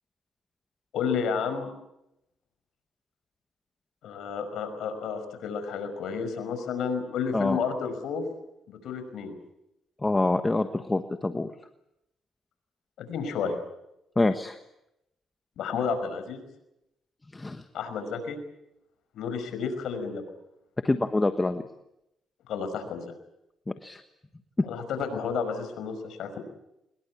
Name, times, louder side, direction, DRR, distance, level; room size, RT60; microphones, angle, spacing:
voice 1, 0.9-1.7 4.0-8.2 8.7-9.4 13.0-13.5 15.6-16.4 17.7-18.4 19.1-20.2 22.5-23.1 24.6-26.4, left 6 dB, 75° left, 8 dB, 5.4 m, -31 dB
voice 2, 10.0-11.5 14.2-14.6 17.3-17.6 20.8-21.6 23.8-24.0, left 2 dB, 20° left, 8 dB, 1.3 m, -26 dB
23.5 x 21.5 x 8.4 m, 0.85 s
cardioid pair, 90°, 0 cm